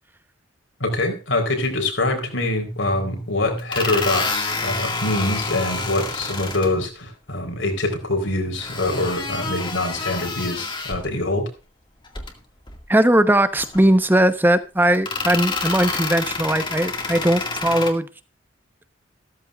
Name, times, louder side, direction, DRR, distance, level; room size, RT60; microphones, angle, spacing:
voice 1, 0.8-11.5, left 2 dB, 70° left, 5 dB, 4.0 m, -24 dB
sound 1, 2.8-2.9 3.6-6.7 8.6-11.1 12.0-12.3 12.7-12.8 13.6-14.2 14.9-17.9, left 3 dB, 25° left, 2.0 m, -28 dB
voice 2, 12.9-18.1, right 1 dB, 10° right, 11 dB, 0.9 m, -19 dB
15.0 x 14.0 x 2.4 m, 0.31 s
head